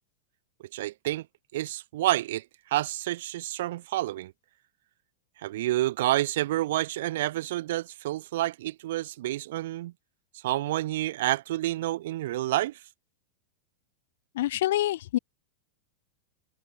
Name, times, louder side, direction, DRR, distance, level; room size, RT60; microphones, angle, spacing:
voice 1, 0.7-1.2 1.5-2.4 2.7-4.3 5.4-9.9 10.4-12.8, right 15 dB, 55° right, 2.1 m, -29 dB
voice 2, 14.3-15.2, left 14 dB, 55° left, 1.9 m, -26 dB
figure-of-eight pair, 90°, 0 cm